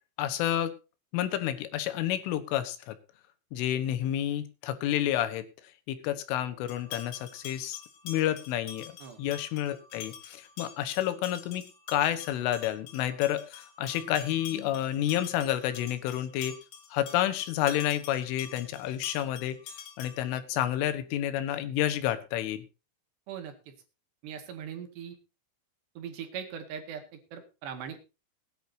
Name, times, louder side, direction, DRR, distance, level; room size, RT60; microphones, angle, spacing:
voice 1, 0.2-0.7 1.1-3.0 3.5-5.5 5.9-16.6 16.9-19.6 20.0-22.6, left 12 dB, 90° left, 11 dB, 3.9 m, -30 dB
sound 1, 6.7-20.4, left 8 dB, 65° left, 5.3 m, -46 dB
voice 2, 23.3-23.7 24.2-25.2 26.0-28.1, right 8 dB, 65° right, 6 dB, 4.0 m, -40 dB
21.0 x 10.5 x 2.8 m, 0.30 s
omnidirectional pair, 5.5 m